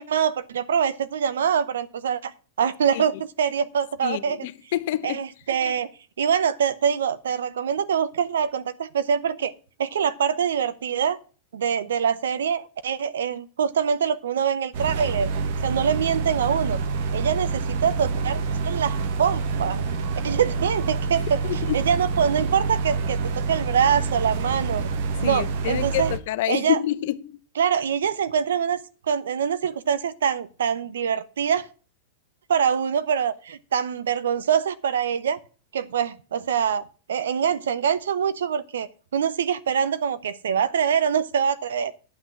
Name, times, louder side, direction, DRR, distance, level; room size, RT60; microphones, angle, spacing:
voice 1, 0.0-4.4 5.0-5.9 6.2-9.5 9.8-11.2 11.5-15.3 15.6-16.8 17.1-19.8 20.2-24.8 25.2-26.1 26.5-26.8 27.6-28.8 29.1-31.7 32.5-35.4 35.7-36.8 37.1-41.9, right 7 dB, 75° right, 0.8 m, -24 dB
voice 2, 4.0-5.2 21.4-21.9 25.2-27.4, left 13 dB, 60° left, 0.7 m, -27 dB
sound 1, 14.7-26.2, right 4 dB, 60° right, 1.2 m, -27 dB
10.0 x 6.1 x 7.1 m
hypercardioid pair, 100°, 0 cm